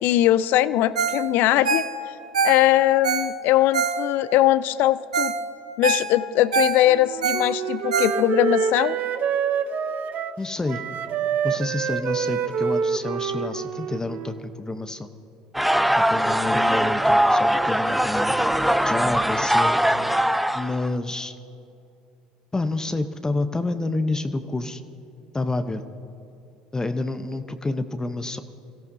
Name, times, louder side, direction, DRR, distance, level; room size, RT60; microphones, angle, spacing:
voice 1, 0.0-1.8 2.4-5.3 5.8-9.0, left 14 dB, 60° left, 17 dB, 0.5 m, -20 dB
Ringtone, 0.9-1.2 1.5-4.4 4.8-4.9 5.1-5.4 5.7-8.6 9.0-9.1, right 5 dB, 85° right, 0.7 m, -25 dB
Wind instrument woodwind instrument, 6.9-10.4 10.7-14.5, right 7 dB, 50° right, 0.8 m, -27 dB
voice 2, 10.4-10.8 11.4-15.1 15.9-18.4 18.8-19.8 20.5-21.4 22.5-24.8 25.3-25.8 26.7-28.4, left 2 dB, 15° left, 10 dB, 0.8 m, -28 dB
sound 1, 15.5-20.9, equal, ahead, 0.5 m, -21 dB
25.5 x 16.5 x 2.7 m, 2.8 s
hypercardioid pair, 65°, 4 cm